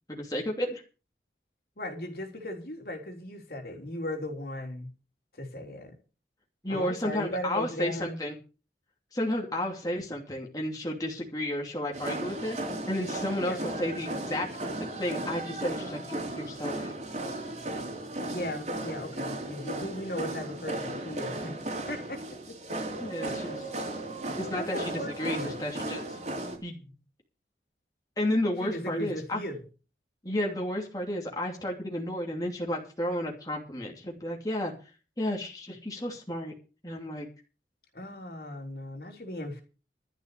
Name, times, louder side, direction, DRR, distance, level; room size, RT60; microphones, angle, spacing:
voice 1, 0.1-0.8 6.6-8.3 9.1-14.5 15.0-16.9 23.0-23.7 24.4-26.2 26.6-26.8 28.2-29.4 30.2-34.7 35.2-36.5 36.8-37.3, left 1 dB, 20° left, 2.8 m, -32 dB
voice 2, 1.8-4.9 5.3-6.0 6.7-8.2 13.4-13.7 18.3-21.5 21.9-23.6 24.5-25.6 28.6-29.6 37.9-39.6, left 1 dB, 55° left, 3.6 m, -37 dB
sound 1, 11.9-26.6, right 1 dB, 40° right, 3.3 m, -36 dB
13.0 x 6.8 x 8.2 m
head